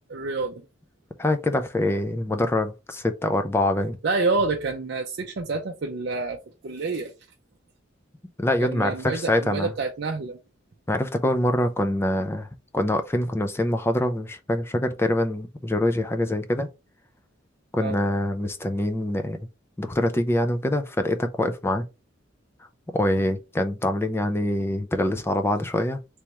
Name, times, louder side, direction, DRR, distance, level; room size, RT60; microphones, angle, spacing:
voice 1, 0.1-0.6 4.0-7.1 8.6-10.4 17.8-18.0 23.2-23.3, right 3 dB, 55° right, 0.5 m, -28 dB
voice 2, 1.2-4.0 8.4-9.7 10.9-12.5 12.7-16.7 17.7-19.4 19.8-21.9 22.9-26.0, left 1 dB, 10° left, 0.4 m, -24 dB
3.4 x 3.2 x 2.9 m
head